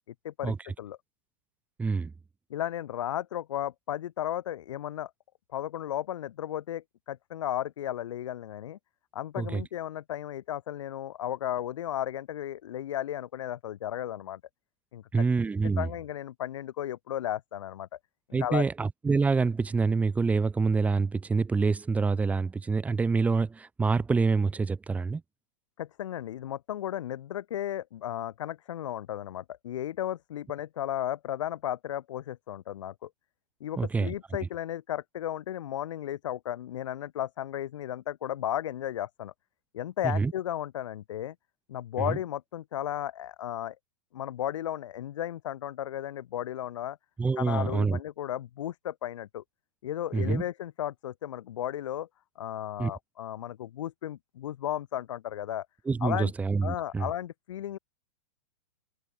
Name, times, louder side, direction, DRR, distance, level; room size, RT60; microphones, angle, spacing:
voice 1, 0.2-1.0 2.5-5.1 5.5-8.8 9.1-14.4 14.9-15.2 15.6-18.0 18.3-18.7 25.8-33.1 33.6-39.3 39.7-41.3 41.7-43.8 44.1-47.0 47.4-49.4 49.8-52.1 52.4-55.7 56.0-56.3 56.6-57.8, left 11 dB, 70° left, 3.0 m, -34 dB
voice 2, 1.8-2.1 9.4-9.6 15.1-15.9 18.3-25.2 33.8-34.1 40.0-40.3 42.0-42.2 47.2-48.0 50.1-50.4 52.8-52.9 55.9-57.1, right 4 dB, 10° right, 2.0 m, -26 dB
open air
hypercardioid pair, 150°, 17 cm